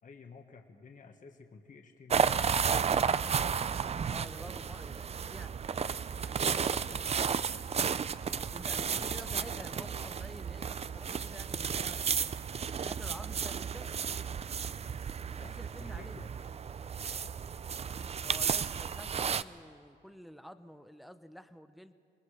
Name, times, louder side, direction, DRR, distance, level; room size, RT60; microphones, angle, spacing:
voice 1, 0.0-2.4 8.6-9.9 15.4-16.3 17.2-17.4, left 5 dB, 40° left, 4 dB, 1.5 m, -52 dB
sound 1, 2.1-19.4, right 7 dB, 30° right, 0.5 m, -33 dB
voice 2, 4.1-6.2 6.5-7.3 8.3-12.4 12.8-14.0 15.3-16.2 18.2-21.9, equal, ahead, 10 dB, 0.9 m, -50 dB
28.0 x 20.0 x 5.0 m, 2.3 s
cardioid pair, 90°, 20 cm